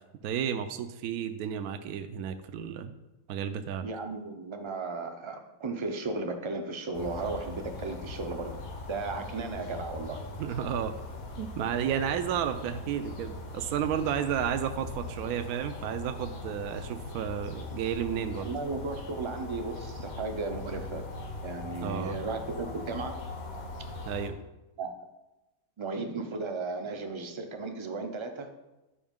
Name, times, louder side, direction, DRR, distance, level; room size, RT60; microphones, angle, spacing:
voice 1, 0.2-2.9 3.3-3.8 10.4-11.0 11.4-18.5 21.8-22.2 24.1-24.3, right 9 dB, 80° right, 8 dB, 1.1 m, -32 dB
voice 2, 3.8-8.6 8.9-10.2 18.4-21.0 21.4-23.3 24.8-24.9 25.8-28.5, right 3 dB, 45° right, 5 dB, 0.3 m, -35 dB
sound 1, 6.9-24.3, left 2 dB, 70° left, 1.5 m, -40 dB
11.5 x 5.1 x 3.6 m, 1.0 s
omnidirectional pair, 1.6 m